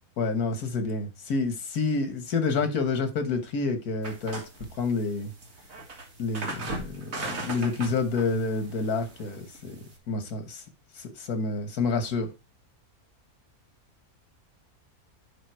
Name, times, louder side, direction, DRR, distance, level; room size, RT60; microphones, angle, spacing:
voice 1, 0.2-4.4 4.7-5.3 6.2-9.8 10.1-10.6 11.2-12.3, left 4 dB, 90° left, 1.8 m, -28 dB
sound 1, 4.0-10.0, right 2 dB, 65° right, 2.2 m, -39 dB
10.5 x 3.7 x 4.6 m
omnidirectional pair, 1.6 m